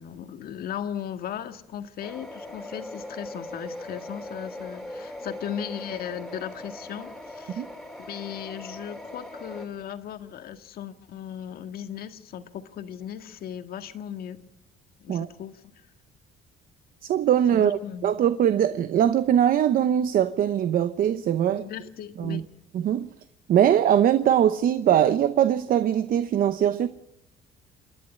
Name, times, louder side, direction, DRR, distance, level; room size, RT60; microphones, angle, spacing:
voice 1, 0.0-7.6 8.0-14.4 15.0-15.6 17.5-18.1 21.5-22.4, left 9 dB, 65° left, 1.8 m, -37 dB
sound 1, 2.0-9.7, left 1 dB, ahead, 3.0 m, -40 dB
voice 2, 17.0-21.7 22.2-22.4 22.7-23.1 23.5-26.9, right 10 dB, 55° right, 0.9 m, -22 dB
28.5 x 11.0 x 9.9 m
cardioid pair, 110°, 17 cm